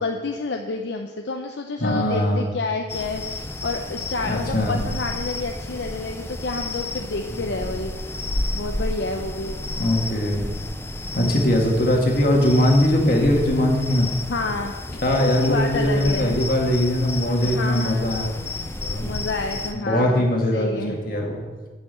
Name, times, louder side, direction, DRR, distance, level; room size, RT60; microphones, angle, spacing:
voice 1, 0.0-7.9 8.5-9.6 14.3-14.7 15.2-16.4 17.4-18.1 19.0-20.3 20.5-21.0, left 3 dB, 70° left, 3 dB, 0.6 m, -29 dB
voice 2, 1.8-2.4 4.2-4.8 7.5-7.7 9.8-10.4 11.1-14.1 15.0-18.3 18.8-19.1 19.8-21.4, left 1 dB, 50° left, 0 dB, 1.8 m, -21 dB
sound 1, 2.9-19.7, left 2 dB, 15° left, 0.5 m, -32 dB
8.6 x 6.2 x 7.5 m, 1.3 s
head